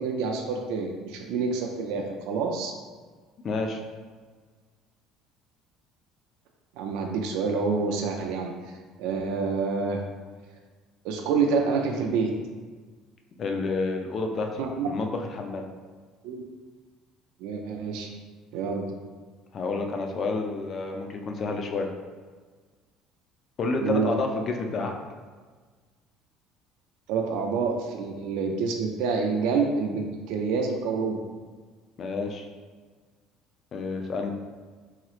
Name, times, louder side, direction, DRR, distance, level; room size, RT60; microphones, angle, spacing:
voice 1, 0.0-2.7 6.8-8.5 9.0-10.0 11.0-12.3 14.6-14.9 16.2-16.4 17.4-18.1 18.5-18.9 23.8-24.1 27.1-31.2, right 5 dB, 80° right, 2 dB, 0.3 m, -27 dB
voice 2, 3.4-3.8 13.4-15.6 19.5-21.9 23.6-24.9 32.0-32.5 33.7-34.3, left 3 dB, 40° left, 3 dB, 0.4 m, -29 dB
3.0 x 2.9 x 2.3 m, 1.5 s
cardioid pair, 130°, 0 cm